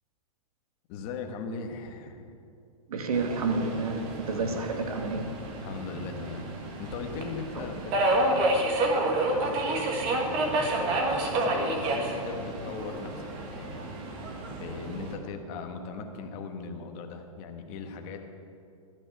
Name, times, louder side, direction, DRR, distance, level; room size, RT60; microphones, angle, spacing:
voice 1, 0.9-2.3 4.3-4.6 5.6-8.6 9.1-13.9 14.6-18.2, left 4 dB, 30° left, 4 dB, 1.2 m, -39 dB
voice 2, 2.9-5.3 7.6-7.7, right 3 dB, 85° right, 5 dB, 1.6 m, -30 dB
Subway metro underground, 3.1-15.1, right 2 dB, 30° right, 1.3 m, -30 dB
12.0 x 5.9 x 8.8 m, 2.5 s
hypercardioid pair, 160°, 18 cm